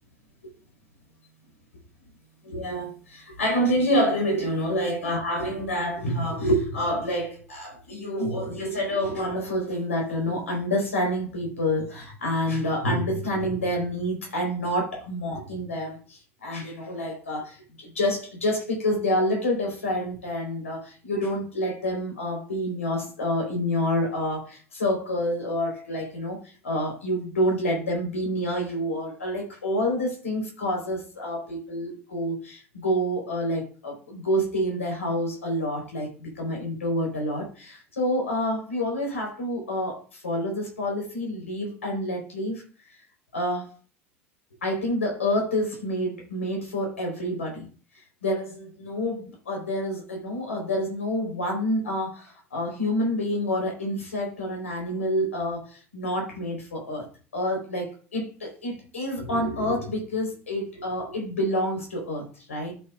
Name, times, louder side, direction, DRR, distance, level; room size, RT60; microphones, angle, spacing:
voice 1, 2.4-42.6 43.3-43.7 44.6-47.7 48.2-57.1 57.3-62.2 62.5-62.7, equal, 85° left, 1 dB, 4.3 m, -28 dB
14.5 x 6.5 x 2.5 m, 0.38 s
figure-of-eight pair, 65°, 7 cm